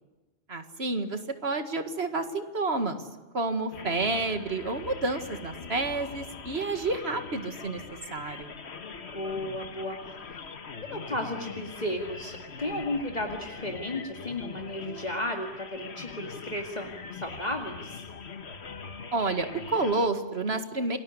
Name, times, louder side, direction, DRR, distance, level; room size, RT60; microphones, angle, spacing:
voice 1, 0.5-3.0 3.3-7.8 8.1-8.5 19.1-21.0, right 3 dB, 70° right, 8 dB, 2.3 m, -29 dB
sound 1, 3.7-20.1, left 5 dB, 75° left, 1.6 m, -42 dB
voice 2, 9.1-10.0 10.8-18.0, left 1 dB, 40° left, 2 dB, 2.4 m, -34 dB
28.0 x 20.5 x 9.7 m, 1.2 s
omnidirectional pair, 1.1 m